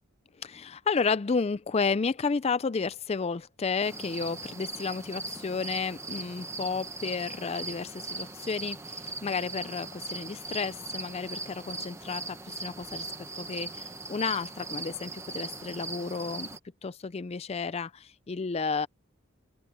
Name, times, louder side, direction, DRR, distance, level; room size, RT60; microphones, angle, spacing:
voice 1, 0.4-13.1 13.4-16.5 16.8-18.9, left 5 dB, 30° left, 0.4 m, -32 dB
sound 1, 3.8-16.6, right 3 dB, 15° right, 1.0 m, -39 dB
open air
head